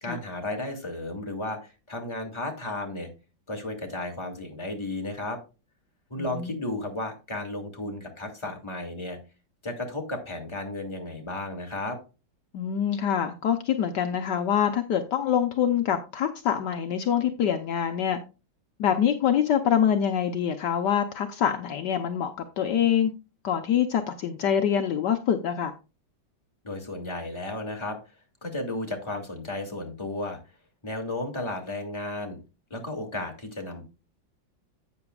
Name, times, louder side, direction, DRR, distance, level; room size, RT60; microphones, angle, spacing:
voice 1, 0.0-3.1 3.5-5.4 6.1-9.2 9.6-12.0 26.6-28.0 28.4-30.4 30.8-32.4 32.7-33.8, left 2 dB, 15° left, 2.1 m, -34 dB
voice 2, 6.2-6.5 12.5-18.2 18.8-23.1 23.4-25.7, left 9 dB, 65° left, 1.3 m, -25 dB
12.0 x 8.5 x 2.4 m
omnidirectional pair, 2.1 m